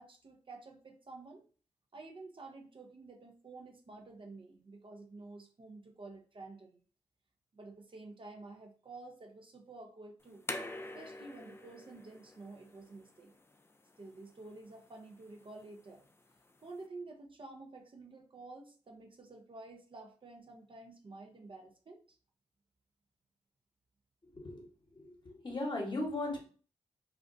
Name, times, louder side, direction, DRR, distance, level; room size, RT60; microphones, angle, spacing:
voice 1, 0.0-1.4 1.9-6.7 7.5-10.4 10.9-13.3 14.0-16.0 16.6-22.0, right 3 dB, 40° right, 2 dB, 0.6 m, -50 dB
sound 1, 10.2-16.9, left 2 dB, 20° left, 0.4 m, -48 dB
voice 2, 24.3-24.7 24.9-26.4, left 2 dB, 35° left, 0 dB, 1.0 m, -37 dB
2.4 x 2.1 x 2.5 m, 0.40 s
supercardioid pair, 40°, 13 cm